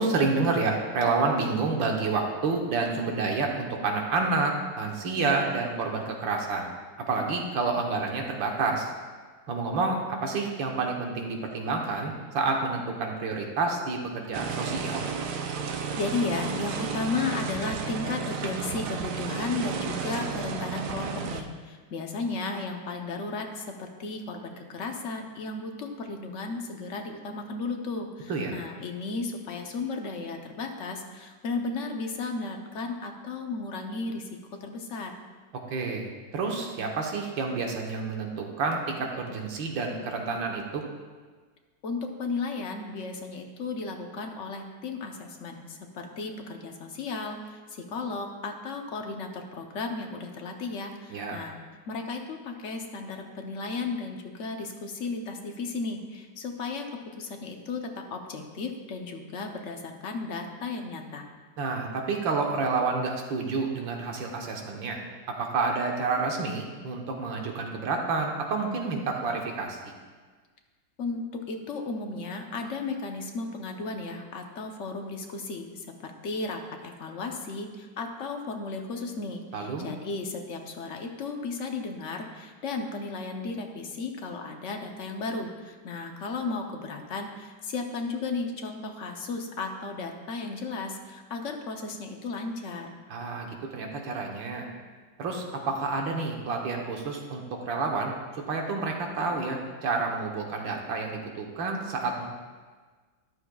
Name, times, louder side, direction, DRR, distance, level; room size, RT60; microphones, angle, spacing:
voice 1, 0.0-6.7 7.1-8.9 9.5-15.0 28.3-28.5 35.7-40.9 51.1-51.4 61.6-65.0 65.4-69.9 79.5-79.9 93.1-94.7 95.2-102.3, right 4 dB, 85° right, 1 dB, 1.9 m, -29 dB
sound 1, 14.3-21.4, right 6 dB, 65° right, 1.1 m, -33 dB
voice 2, 16.0-34.3 34.6-35.1 41.8-51.6 51.9-56.9 57.2-61.3 71.0-92.9, left 3 dB, 55° left, 3 dB, 0.9 m, -34 dB
13.0 x 9.9 x 2.3 m, 1.4 s
omnidirectional pair, 2.0 m